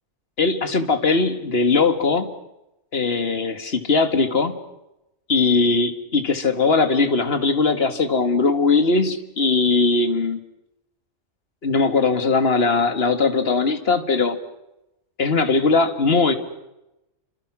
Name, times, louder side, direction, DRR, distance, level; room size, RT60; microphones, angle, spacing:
voice 1, 0.4-2.3 2.9-4.6 5.3-10.4 11.6-14.4 15.2-16.4, left 4 dB, 50° left, 8 dB, 2.1 m, -20 dB
29.5 x 25.5 x 6.2 m, 0.93 s
omnidirectional pair, 1.4 m